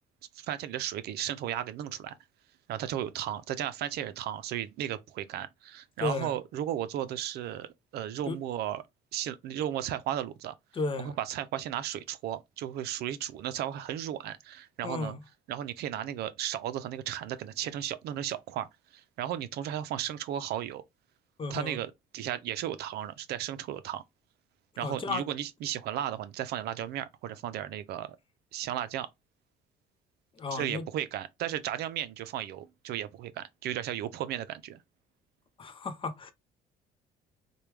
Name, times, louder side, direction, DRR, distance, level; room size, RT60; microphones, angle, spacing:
voice 1, 0.3-2.1 2.7-8.8 9.1-10.5 11.0-15.2 15.5-20.8 21.5-24.0 24.8-28.2 28.5-29.1 30.5-34.8, right 11 dB, 75° right, 0.5 m, -35 dB
voice 2, 6.0-6.4 8.3-8.4 10.7-11.1 14.8-15.2 21.4-21.8 24.8-25.2 30.4-30.8 35.6-36.3, left 3 dB, 30° left, 0.7 m, -33 dB
4.5 x 2.3 x 3.3 m
cardioid pair, 110°, 17 cm